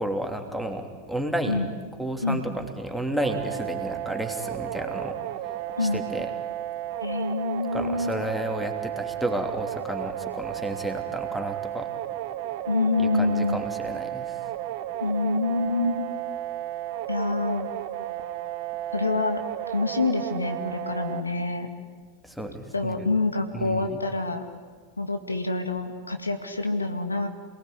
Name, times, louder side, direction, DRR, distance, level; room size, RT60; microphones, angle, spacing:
voice 1, 0.0-1.7 2.0-6.3 7.7-11.9 13.0-14.5 22.2-23.1 23.5-24.0, right 1 dB, ahead, 5 dB, 3.1 m, -32 dB
sound 1, 3.2-21.2, right 12 dB, 45° right, 1.5 m, -33 dB
voice 2, 7.0-8.1 12.7-13.6 15.0-16.1 17.1-17.7 18.9-19.4 19.7-21.7 22.7-24.4 25.0-27.3, left 3 dB, 80° left, 7 dB, 2.1 m, -26 dB
28.0 x 19.5 x 10.0 m, 1.5 s
figure-of-eight pair, 90°, 0 cm